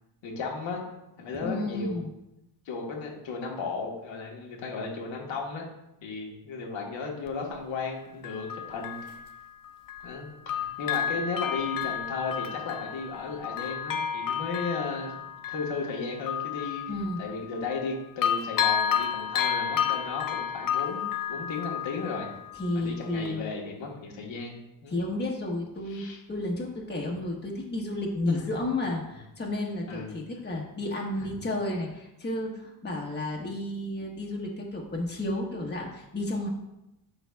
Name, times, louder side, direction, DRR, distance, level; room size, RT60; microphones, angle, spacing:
voice 1, 0.2-0.8 1.2-2.0 2.6-5.7 6.0-9.1 10.0-15.1 15.5-16.8 17.2-22.3 22.7-25.0 25.9-26.2 28.3-28.6 29.9-30.2 31.1-31.3, left 4 dB, 85° left, -1 dB, 1.5 m, -35 dB
voice 2, 1.4-2.1 16.9-17.2 22.6-23.5 24.9-36.5, left 1 dB, 25° left, -1 dB, 1.2 m, -32 dB
Bell, 7.3-7.4 8.2-10.2 10.5-17.9 18.2-22.8 23.3-23.4, left 8 dB, 50° left, 0.6 m, -31 dB
11.0 x 4.0 x 2.3 m, 0.90 s
cardioid pair, 95°, 44 cm